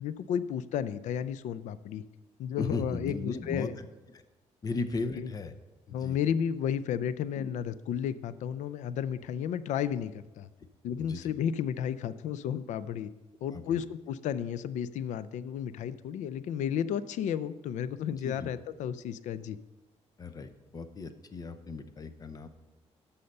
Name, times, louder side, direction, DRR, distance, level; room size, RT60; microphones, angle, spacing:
voice 1, 0.0-2.0 2.4-3.8 5.2-5.3 5.9-10.5 10.8-13.1 13.4-19.6, left 9 dB, 85° left, 15 dB, 0.5 m, -33 dB
voice 2, 2.6-3.9 4.1-4.2 4.6-5.5 5.9-6.2 7.3-7.5 11.0-11.3 13.5-13.8 18.1-18.5 20.2-22.5, left 3 dB, 30° left, 11 dB, 0.8 m, -37 dB
13.0 x 5.7 x 5.4 m, 1.1 s
cardioid pair, 135°, 12 cm